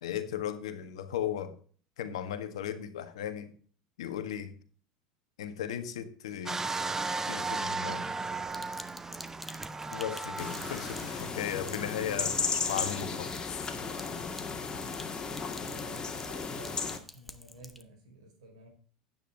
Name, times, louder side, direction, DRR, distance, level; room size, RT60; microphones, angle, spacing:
voice 1, 0.0-1.6 2.0-3.5 4.0-4.5 5.4-6.6 7.3-8.1 9.9-13.7, left 9 dB, 85° left, 1.5 m, -36 dB
sound 1, 6.5-11.5 12.1-12.2, right 3 dB, 15° right, 0.7 m, -35 dB
Sink (filling or washing), 8.5-17.8, left 1 dB, ahead, 1.2 m, -50 dB
sound 2, 10.4-17.0, left 5 dB, 25° left, 2.2 m, -35 dB
voice 2, 15.6-16.8 17.1-18.7, right 2 dB, 85° right, 5.2 m, -51 dB
10.0 x 9.1 x 3.9 m
hypercardioid pair, 95°, 3 cm